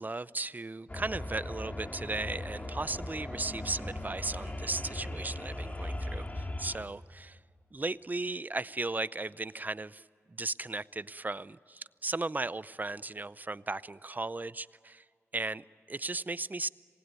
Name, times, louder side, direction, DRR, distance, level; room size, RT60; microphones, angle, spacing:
voice 1, 0.0-7.4 7.7-15.0 15.3-16.7, right 2 dB, 35° right, 18 dB, 0.6 m, -36 dB
sound 1, 0.9-6.8, left 1 dB, 30° left, 2.4 m, -38 dB
26.5 x 19.5 x 9.3 m, 2.3 s
cardioid pair, 60°, 5 cm